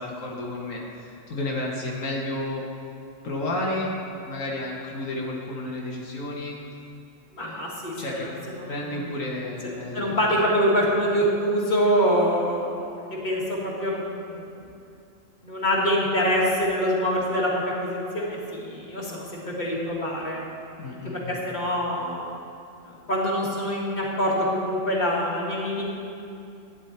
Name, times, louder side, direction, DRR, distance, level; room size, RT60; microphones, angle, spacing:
voice 1, 0.0-2.6 3.2-3.9 4.2-6.6 7.4-7.6 8.0-8.3 8.7-10.3 20.8-21.4, left 1 dB, 85° left, -3 dB, 1.7 m, -31 dB
voice 2, 7.3-8.7 9.9-14.4 15.4-20.4 20.9-22.2 22.9-25.8, equal, 35° left, -5 dB, 2.0 m, -25 dB
11.5 x 9.5 x 4.3 m, 2.6 s
omnidirectional pair, 1.3 m